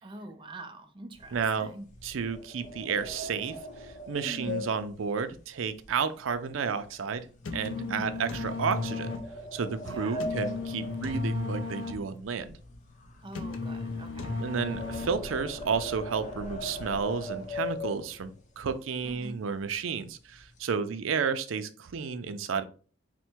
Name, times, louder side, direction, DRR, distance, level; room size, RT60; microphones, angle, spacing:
voice 1, 0.0-1.9 4.2-4.7 7.7-8.2 9.8-10.3 13.2-14.3 19.0-19.4, right 2 dB, 25° right, 0.6 m, -44 dB
sound 1, 1.1-6.5 6.8-7.1 7.6-7.8 8.6-11.9 12.2-18.4 19.0-19.1 19.4-19.7 20.0-20.7, left 1 dB, 40° left, 0.7 m, -40 dB
voice 2, 1.3-1.7 2.0-3.5 3.8-7.3 7.5-9.1 9.5-12.5 14.4-22.6, right 6 dB, 90° right, 0.5 m, -31 dB
sound 2, 7.2-15.5, left 3 dB, 75° left, 0.6 m, -35 dB
4.4 x 2.1 x 4.4 m
head